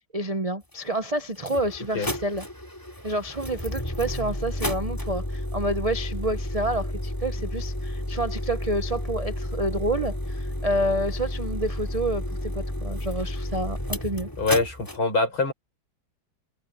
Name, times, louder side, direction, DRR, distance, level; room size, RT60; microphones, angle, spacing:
voice 1, 0.1-2.4 3.0-14.3, right 1 dB, 75° right, 0.3 m, -29 dB
sound 1, 0.7-0.8 1.3-15.0, left 1 dB, 10° left, 3.5 m, -31 dB
voice 2, 14.4-15.5, left 3 dB, 75° left, 7.6 m, -24 dB
omnidirectional pair, 2.2 m